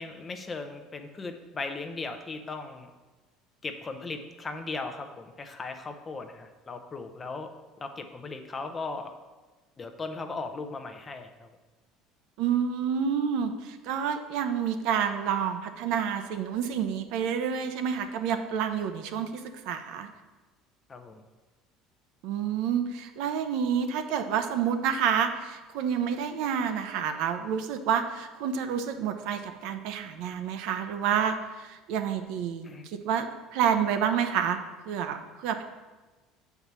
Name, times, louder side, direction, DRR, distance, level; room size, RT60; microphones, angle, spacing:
voice 1, 0.0-2.9 3.6-7.5 7.8-9.1 9.8-11.5 20.9-21.2 32.6-32.9, left 3 dB, 20° left, 7 dB, 0.6 m, -37 dB
voice 2, 12.4-20.1 22.2-33.3 33.5-34.6 34.9-35.6, right 8 dB, 70° right, 7 dB, 0.8 m, -29 dB
7.1 x 4.7 x 6.8 m, 1.2 s
cardioid pair, 155°, 0 cm